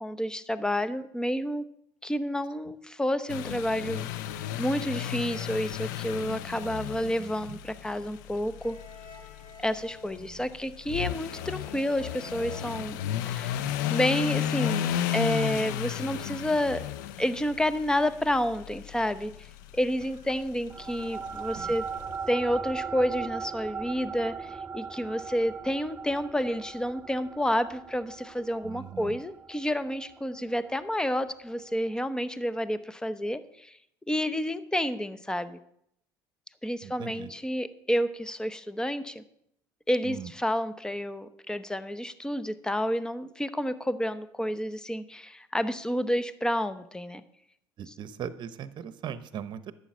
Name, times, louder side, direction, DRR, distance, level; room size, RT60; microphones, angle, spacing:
voice 1, 0.0-1.6 2.0-4.1 4.6-8.8 9.6-13.0 13.3-13.6 13.9-16.8 17.2-19.5 19.7-21.8 22.3-33.8 34.1-35.6 36.6-39.2 39.9-47.2, equal, 5° left, 13 dB, 0.9 m, -30 dB
sound 1, 3.3-22.1, left 11 dB, 85° left, 0.6 m, -34 dB
voice 2, 7.2-7.6 10.2-10.5 21.5-21.8 28.6-29.2 36.8-37.3 40.0-40.3 47.8-49.7, right 8 dB, 50° right, 13 dB, 1.0 m, -40 dB
Violin Tuning, 8.6-10.7 11.1-15.4, left 2 dB, 50° left, 5.2 m, -50 dB
sound 2, 20.7-31.5, right 5 dB, 20° right, 0.6 m, -39 dB
11.5 x 8.2 x 6.2 m, 0.74 s
supercardioid pair, 75°, 10 cm